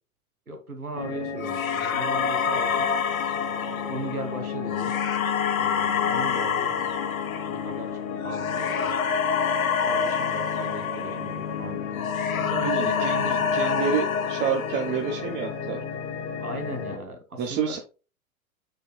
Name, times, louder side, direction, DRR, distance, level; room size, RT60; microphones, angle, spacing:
voice 1, 0.5-3.0 3.8-5.0 5.6-6.8 7.5-9.0 9.8-13.5 16.4-17.8, right 1 dB, 85° right, 4 dB, 2.2 m, -37 dB
sound 1, 0.9-17.0, left 7 dB, 55° left, 1.7 m, -33 dB
sound 2, 1.4-11.6 11.9-15.3, left 7 dB, 70° left, 1.3 m, -27 dB
voice 2, 12.6-15.8 17.4-17.8, right 7 dB, 25° right, 3 dB, 1.0 m, -28 dB
8.3 x 5.8 x 2.2 m, 0.32 s
figure-of-eight pair, 100°, 43 cm